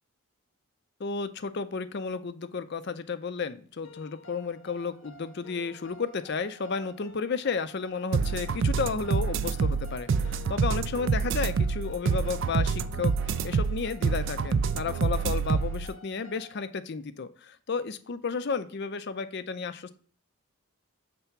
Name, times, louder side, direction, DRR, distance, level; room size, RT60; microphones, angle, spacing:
voice 1, 1.0-20.0, left 5 dB, 50° left, 13 dB, 0.5 m, -33 dB
sound 1, 3.8-16.7, equal, 70° left, 1.0 m, -52 dB
sound 2, 8.1-15.9, right 5 dB, 55° right, 0.3 m, -27 dB
6.8 x 3.4 x 5.8 m, 0.43 s
head